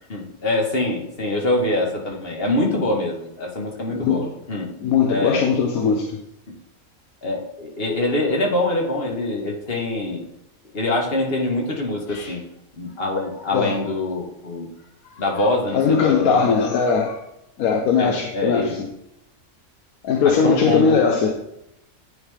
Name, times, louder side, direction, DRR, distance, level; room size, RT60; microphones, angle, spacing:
voice 1, 0.1-4.7 5.1-5.4 7.2-10.2 10.7-12.4 12.8-14.7 15.2-16.7 18.0-18.7 20.2-21.0, left 2 dB, 45° left, 0 dB, 1.4 m, -24 dB
voice 2, 3.9-4.3 4.8-6.2 12.1-12.4 13.5-13.8 15.3-17.2 17.6-18.9 20.0-21.4, left 6 dB, 90° left, 2 dB, 1.1 m, -20 dB
9.7 x 3.6 x 3.3 m, 0.81 s
omnidirectional pair, 1.5 m